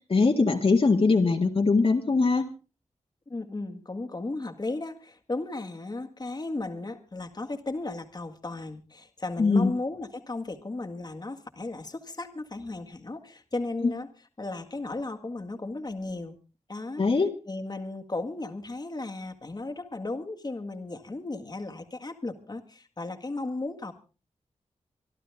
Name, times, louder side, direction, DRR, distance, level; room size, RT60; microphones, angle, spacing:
voice 1, 0.1-2.5 9.4-9.7 13.8-13.9 17.0-17.3, left 4 dB, 50° left, 3 dB, 1.8 m, -21 dB
voice 2, 3.3-14.1 14.4-16.4 16.7-23.9, left 2 dB, 35° left, 4 dB, 1.8 m, -35 dB
25.5 x 12.0 x 3.5 m, 0.33 s
wide cardioid pair, 70°, 12 cm